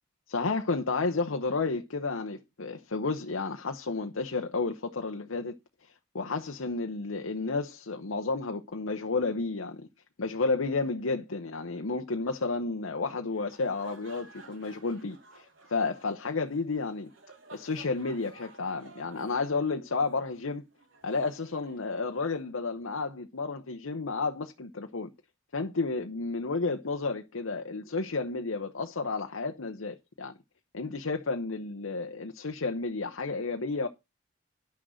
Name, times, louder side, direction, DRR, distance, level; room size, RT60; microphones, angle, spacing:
voice 1, 0.3-5.6 5.8-9.9 10.2-17.1 17.5-20.6 21.0-25.1 25.5-30.4 30.7-33.9, left 3 dB, 90° left, 0.9 m, -31 dB
sound 1, 13.3-22.4, right 3 dB, 75° right, 2.6 m, -55 dB
10.5 x 6.3 x 6.4 m
head